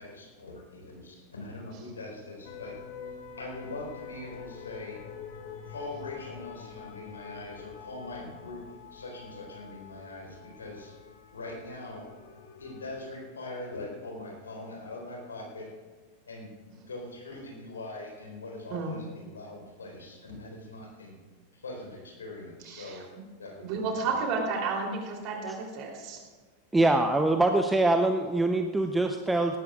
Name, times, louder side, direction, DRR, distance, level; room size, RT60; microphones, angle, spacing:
voice 1, 0.0-2.7 3.4-5.0 5.6-8.6 8.9-11.0 11.3-12.1 12.6-15.7 16.3-21.2 21.5-23.0 23.3-24.1 26.7-26.9, left 2 dB, 70° left, 0 dB, 4.1 m, -42 dB
sound 1, 2.4-13.1, left 7 dB, 50° left, 1.6 m, -46 dB
voice 2, 22.7-23.0 23.6-26.2, right 4 dB, 40° right, 0 dB, 3.3 m, -32 dB
voice 3, 26.7-29.6, right 2 dB, 10° right, 6 dB, 0.7 m, -24 dB
18.5 x 18.5 x 2.4 m, 1.4 s
figure-of-eight pair, 90°, 0 cm